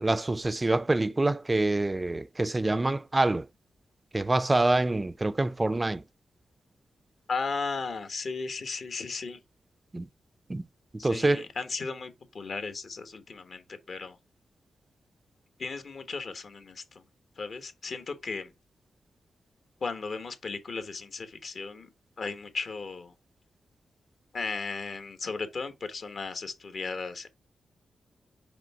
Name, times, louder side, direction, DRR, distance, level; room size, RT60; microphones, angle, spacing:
voice 1, 0.0-3.5 4.1-6.0 9.9-10.1 10.5-10.7 10.9-11.4, right 2 dB, 25° right, 0.4 m, -26 dB
voice 2, 7.3-9.4 11.0-14.2 15.6-17.0 17.4-18.5 19.8-21.9 22.2-23.1 24.3-27.3, left 4 dB, 60° left, 1.1 m, -35 dB
5.0 x 3.5 x 5.4 m
cardioid pair, 55°, 0 cm